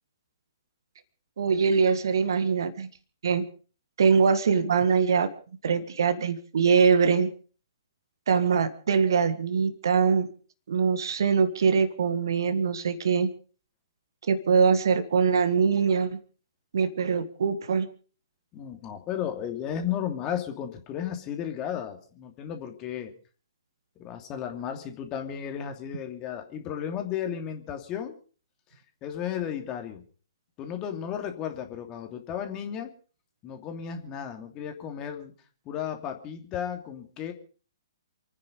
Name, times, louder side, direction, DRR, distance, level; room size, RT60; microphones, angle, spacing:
voice 1, 1.4-2.9 3.2-3.5 4.0-5.3 5.6-7.3 8.3-10.3 10.7-13.3 14.3-16.2 16.7-17.9, right 6 dB, 55° right, 11 dB, 1.7 m, -23 dB
voice 2, 18.5-23.1 24.0-28.2 29.0-30.0 30.6-32.9 33.4-35.3 35.6-37.3, left 9 dB, 25° left, 5 dB, 2.8 m, -34 dB
28.5 x 9.7 x 5.2 m, 0.40 s
figure-of-eight pair, 125°, 2 cm